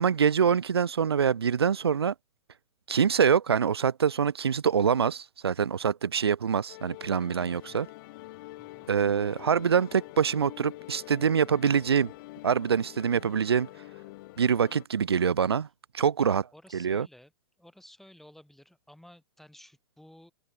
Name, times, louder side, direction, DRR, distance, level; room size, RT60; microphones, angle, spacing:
voice 1, 0.0-2.1 2.9-7.9 8.9-12.1 12.4-13.7 14.4-15.7 15.9-16.4 16.7-17.1, right 7 dB, 90° right, 0.4 m, -25 dB
sound 1, 6.7-14.9, left 21 dB, 55° left, 3.1 m, -46 dB
voice 2, 8.6-8.9 16.2-17.3 17.6-20.3, left 1 dB, ahead, 7.9 m, -54 dB
open air
hypercardioid pair, 105°, 13 cm